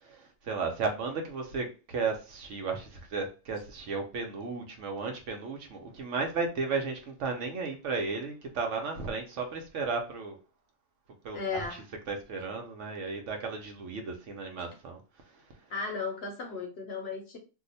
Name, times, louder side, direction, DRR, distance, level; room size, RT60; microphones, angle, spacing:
voice 1, 0.0-10.4 11.2-11.7 12.1-15.0, right 4 dB, 65° right, 1.0 m, -34 dB
voice 2, 11.3-11.8 15.7-17.4, left 4 dB, 55° left, 0.8 m, -35 dB
2.8 x 2.0 x 3.9 m
omnidirectional pair, 1.4 m